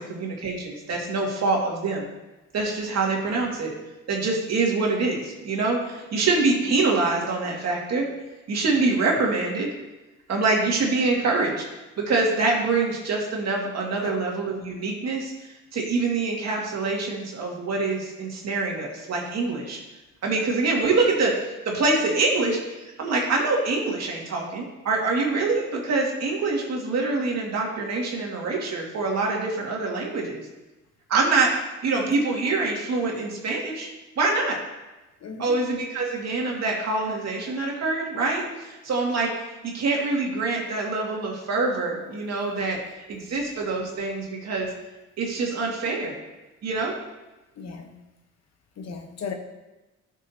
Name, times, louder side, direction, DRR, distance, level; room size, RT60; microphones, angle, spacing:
voice 1, 0.0-2.0 2.5-3.7 4.1-8.1 8.5-9.7 10.3-11.7 12.0-15.3 15.7-19.8 20.2-30.4 31.1-31.5 31.8-33.9 34.2-34.6 35.4-39.3 39.6-42.8 43.1-44.7 45.2-46.2 46.6-46.9, right 3 dB, 60° right, -1 dB, 2.2 m, -25 dB
voice 2, 35.2-35.6 47.6-47.9 48.8-49.3, left 5 dB, 60° left, 4 dB, 1.2 m, -36 dB
12.0 x 6.2 x 2.9 m, 1.1 s
cardioid pair, 90°, 30 cm